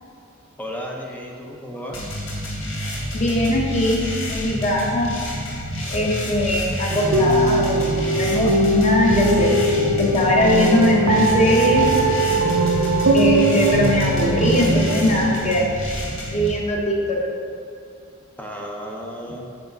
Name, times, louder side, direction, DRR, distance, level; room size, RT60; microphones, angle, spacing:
voice 1, 0.6-2.1 18.4-19.5, equal, 10° left, -1 dB, 0.7 m, -33 dB
sound 1, 1.9-16.5, equal, 65° left, 1.3 m, -29 dB
voice 2, 3.1-5.1 5.9-9.6 10.0-11.9 13.1-15.7 16.3-17.2, left 1 dB, 30° left, -3 dB, 1.2 m, -20 dB
sound 2, 6.9-15.4, right 1 dB, 80° right, 0.7 m, -20 dB
7.6 x 5.2 x 3.9 m, 2.4 s
head